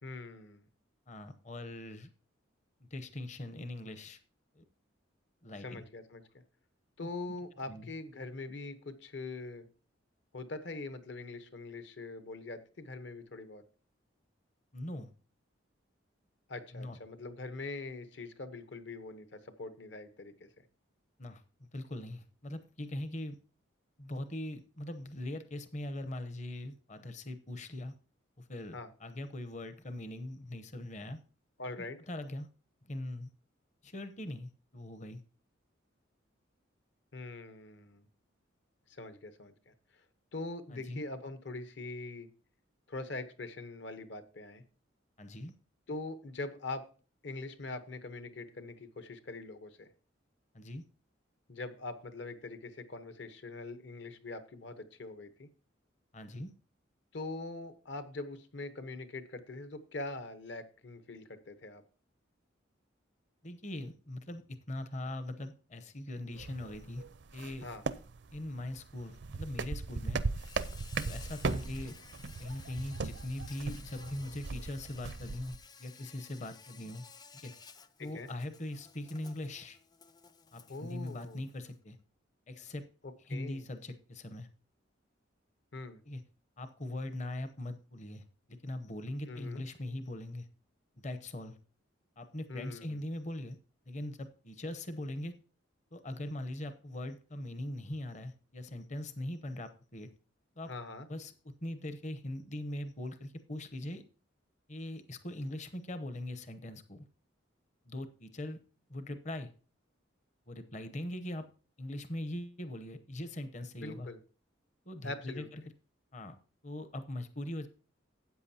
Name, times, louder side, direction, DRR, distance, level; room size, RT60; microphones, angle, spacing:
voice 1, 0.0-0.7 5.6-6.2 7.0-9.6 10.3-13.6 16.5-20.5 28.7-28.9 31.6-32.0 37.1-38.1 38.9-39.7 40.3-42.3 42.9-44.6 45.9-46.8 47.2-49.9 51.5-55.5 57.1-61.8 67.6-67.8 78.0-78.3 80.7-81.4 83.0-83.6 85.7-86.0 89.3-89.6 92.5-93.0 100.7-101.1 113.8-114.2 115.0-115.5, left 2 dB, 60° left, 10 dB, 1.0 m, -43 dB
voice 2, 1.1-2.1 2.9-4.2 4.6-4.7 5.4-5.8 7.0-7.1 7.7-7.9 14.7-15.1 16.7-17.0 21.2-23.4 24.0-27.9 28.4-31.2 31.8-32.5 32.8-33.3 33.8-35.2 40.7-41.0 45.2-45.5 50.5-50.8 56.1-56.5 63.4-67.0 67.3-67.7 68.3-70.3 71.0-72.0 72.4-77.0 77.3-77.5 78.0-79.8 80.5-82.0 82.5-82.8 83.3-84.5 86.1-86.2 86.6-90.5 91.0-91.6 92.2-93.6 93.9-95.4 95.9-100.1 100.6-100.7 101.1-101.3 101.6-104.0 104.7-107.0 107.8-108.6 108.9-109.5 110.5-111.5 111.8-114.1 114.9-115.6 116.1-116.4 116.6-117.7, left 1 dB, 35° left, 10 dB, 0.8 m, -41 dB
sound 1, 66.3-75.6, right 4 dB, 60° right, 0.5 m, -39 dB
Insect, 70.3-81.7, left 5 dB, 20° left, 0.4 m, -55 dB
13.0 x 8.6 x 2.8 m, 0.37 s
head